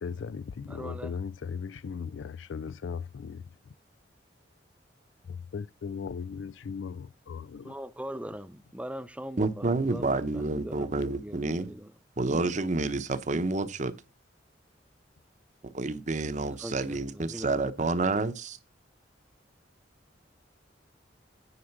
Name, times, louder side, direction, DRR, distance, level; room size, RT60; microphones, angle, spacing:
voice 1, 0.0-3.7 5.3-7.7, left 6 dB, 85° left, 0.4 m, -38 dB
voice 2, 0.7-1.1 7.7-10.2 10.6-11.9 16.6-17.6, right 1 dB, 5° right, 0.4 m, -41 dB
voice 3, 9.4-11.7 12.2-13.9 15.7-18.6, right 3 dB, 40° right, 0.8 m, -29 dB
9.7 x 4.9 x 5.9 m
head